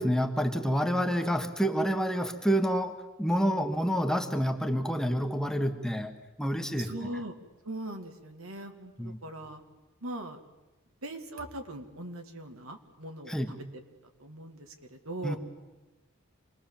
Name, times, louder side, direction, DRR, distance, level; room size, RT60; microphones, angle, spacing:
voice 1, 0.0-6.1 6.4-6.9 9.0-9.2 13.3-13.5 15.2-15.4, equal, 5° left, 5 dB, 1.5 m, -28 dB
voice 2, 6.8-7.3 7.6-9.6 10.0-10.4 11.0-13.4 13.7-13.8 14.2-15.4, right 1 dB, 80° right, 5 dB, 2.3 m, -40 dB
27.0 x 20.5 x 7.4 m, 1.1 s
head